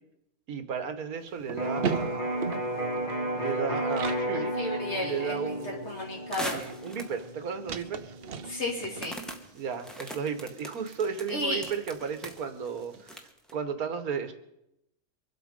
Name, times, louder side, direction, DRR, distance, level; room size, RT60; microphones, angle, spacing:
voice 1, 0.5-2.6 3.3-4.5 5.0-5.9 6.5-8.1 9.5-14.3, right 6 dB, 80° right, 9 dB, 1.7 m, -34 dB
sound 1, 1.2-4.3 4.7-4.8 5.1-13.1, right 7 dB, 50° right, 0.8 m, -40 dB
Electric guitar, 1.6-9.3, right 1 dB, 30° left, 2.8 m, -34 dB
voice 2, 4.3-5.6 5.8-6.7 8.5-9.2 11.3-11.7, left 1 dB, 50° left, 0 dB, 2.9 m, -33 dB
sound 2, 6.3-7.3 7.9-8.0 9.0-13.5, equal, ahead, 1.3 m, -40 dB
24.5 x 8.3 x 5.3 m, 0.85 s
omnidirectional pair, 1.5 m